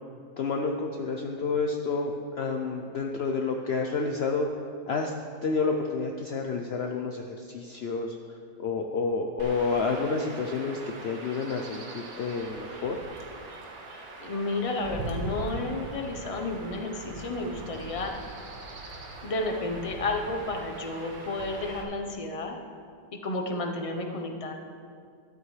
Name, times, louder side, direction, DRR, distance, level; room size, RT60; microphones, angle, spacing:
voice 1, 0.4-4.5 4.9-5.1 5.4-13.0, left 4 dB, 65° left, 2 dB, 0.6 m, -29 dB
Chirp tweet / Wind / Stream, 9.4-21.8, right 2 dB, 85° right, 1.9 m, -41 dB
voice 2, 14.2-18.1 19.2-22.6 23.2-24.5, left 2 dB, 30° left, 3 dB, 0.7 m, -31 dB
12.5 x 12.0 x 3.3 m, 2.3 s
omnidirectional pair, 1.9 m